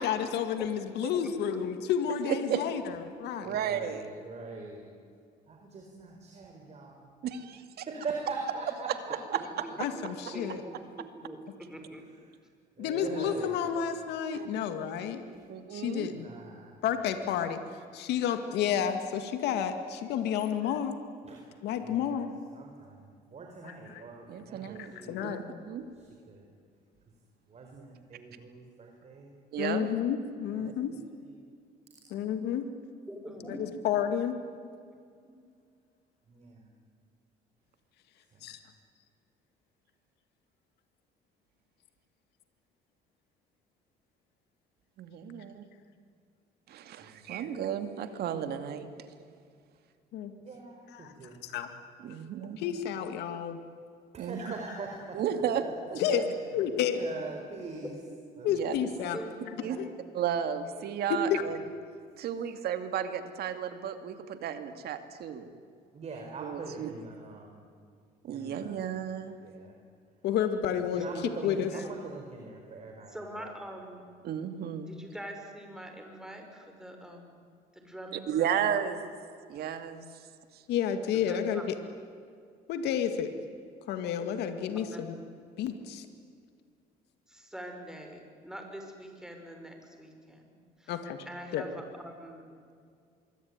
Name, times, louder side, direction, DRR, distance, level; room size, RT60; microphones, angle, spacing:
voice 1, 0.0-3.5 9.8-10.6 12.8-15.2 15.7-16.3 16.8-17.6 17.9-21.0 21.6-22.3 23.9-24.0 24.8-25.4 29.6-30.9 32.1-32.7 33.8-34.4 38.4-38.6 50.1-50.3 50.9-51.1 51.4-51.7 52.6-53.6 56.0-56.2 56.5-57.0 58.4-59.2 59.8-59.9 61.3-61.4 70.2-71.0 71.4-71.7 80.7-81.8 82.7-83.3 83.9-85.2 85.6-86.1 90.9-91.3 91.5-91.6, left 9 dB, 80° left, 8 dB, 2.2 m, -30 dB
voice 2, 1.2-1.6 9.6-11.4 11.7-12.0 33.1-33.9 35.2-35.3 55.9-56.3 59.1-59.9 70.9-72.4 73.1-74.0 74.9-77.4 77.7-78.8 81.3-81.6 84.7-85.4 87.3-90.5 90.8-91.0 91.3-92.6, equal, 5° right, 4 dB, 5.9 m, -45 dB
voice 3, 2.3-2.6 3.4-4.0 7.2-7.9 8.9-9.0 14.3-14.5 15.5-16.1 24.3-24.9 25.2-25.4 25.6-25.9 29.5-29.9 30.6-30.7 45.0-45.6 46.7-49.1 52.0-52.6 54.2-54.4 55.1-56.2 58.4-58.7 59.6-59.8 60.1-61.6 62.2-65.5 66.4-66.9 68.2-69.4 74.2-75.0 78.1-79.0 79.5-80.0 80.5-80.6, right 9 dB, 70° right, 8 dB, 2.5 m, -33 dB
voice 4, 3.4-4.8 5.5-7.0 7.8-10.4 10.7-10.8 12.8-13.9 15.3-15.4 16.1-17.1 20.3-20.4 21.2-21.5 21.8-22.2 22.5-25.2 26.0-26.5 27.5-29.3 30.5-30.7 31.2-31.4 36.3-36.7 38.3-38.5 47.0-47.3 50.4-51.4 54.1-55.2 55.6-56.4 56.7-57.9 58.4-58.9 65.9-67.7 68.3-68.9 69.4-69.7 70.9-73.5, right 3 dB, 40° right, 2 dB, 4.7 m, -43 dB
26.0 x 23.0 x 9.7 m, 2.2 s
cardioid pair, 110°, 17 cm